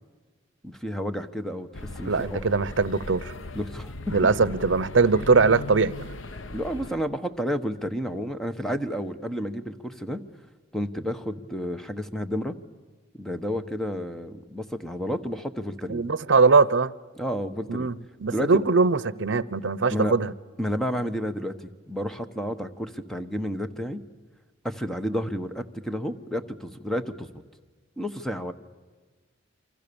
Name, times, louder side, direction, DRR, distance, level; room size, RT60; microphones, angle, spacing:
voice 1, 0.6-1.7 1.9-2.6 3.5-3.9 6.5-10.2 10.7-12.6 13.1-16.0 17.1-17.9 18.3-18.7 19.9-20.1 20.6-24.0 24.6-27.3 28.0-28.5, equal, ahead, 1.1 m, -31 dB
sound 1, 1.7-6.9, left 2 dB, 80° left, 1.0 m, -38 dB
voice 2, 2.0-3.3 4.1-6.1 15.9-16.9 17.7-20.3, right 4 dB, 70° right, 0.8 m, -21 dB
28.0 x 25.0 x 7.0 m
head